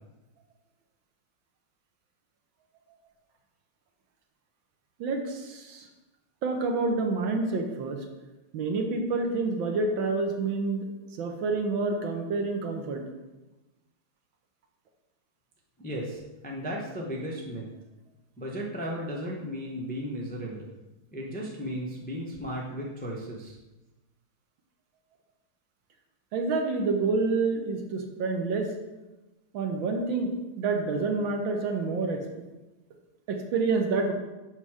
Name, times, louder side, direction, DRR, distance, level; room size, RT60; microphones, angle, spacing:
voice 1, 5.0-5.9 6.4-8.0 8.5-10.9 11.1-13.0 26.3-28.7 29.5-32.2 33.3-34.1, right 3 dB, 70° right, 3 dB, 1.6 m, -28 dB
voice 2, 15.8-17.7 18.4-20.7 21.1-23.6, equal, 10° left, -3 dB, 0.4 m, -35 dB
6.8 x 5.8 x 4.8 m, 1.1 s
omnidirectional pair, 2.4 m